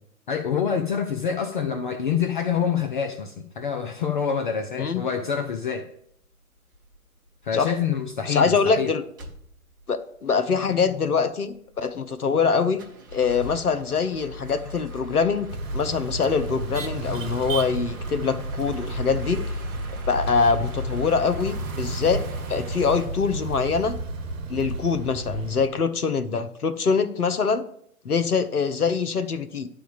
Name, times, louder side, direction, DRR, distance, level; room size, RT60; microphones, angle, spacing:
voice 1, 0.3-5.9 7.4-8.9, left 7 dB, 35° left, 6 dB, 0.5 m, -26 dB
sound 1, 6.7-7.0 7.4-7.6 7.9-8.0 8.3-8.8 9.2-9.9 10.3-10.4 10.6-11.1 11.5-12.4 12.7-23.1, left 2 dB, 15° right, 0.4 m, -37 dB
voice 2, 8.3-9.0 9.9-12.8 13.1-19.4 20.1-22.2 22.5-23.9 24.5-27.6 28.0-29.7, left 5 dB, 80° left, 10 dB, 0.9 m, -24 dB
sound 2, 15.5-25.7, right 3 dB, 60° right, 1.1 m, -33 dB
10.0 x 3.5 x 7.1 m, 0.69 s
figure-of-eight pair, 120°, 44 cm